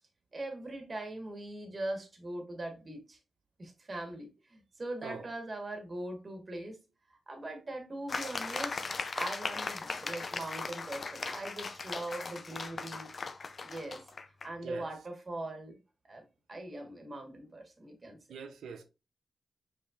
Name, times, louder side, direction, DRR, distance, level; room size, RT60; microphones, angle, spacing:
voice 1, 0.3-3.2 3.6-6.8 7.3-8.8 9.1-13.1 13.6-14.0 14.4-15.8 16.1-16.2 16.5-18.2, right 1 dB, 40° right, 1.3 m, -41 dB
sound 1, 8.1-14.5, left 4 dB, 50° left, 0.5 m, -38 dB
voice 2, 18.3-18.8, right 5 dB, 90° right, 0.6 m, -43 dB
5.3 x 3.4 x 2.4 m
cardioid pair, 60°, 0 cm